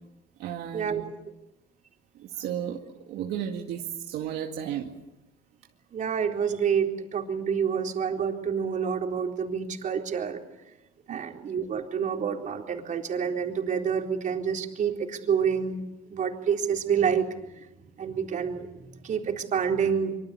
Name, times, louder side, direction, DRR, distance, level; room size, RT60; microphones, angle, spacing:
voice 1, 0.4-1.1 2.2-2.8 3.1-4.9 11.1-11.2, right 9 dB, 80° right, 2 dB, 2.1 m, -33 dB
voice 2, 5.9-10.4 11.1-15.8 16.1-17.7 18.0-20.2, right 7 dB, 50° right, 3 dB, 4.1 m, -28 dB
25.0 x 24.0 x 8.5 m, 0.92 s
cardioid pair, 110°, 17 cm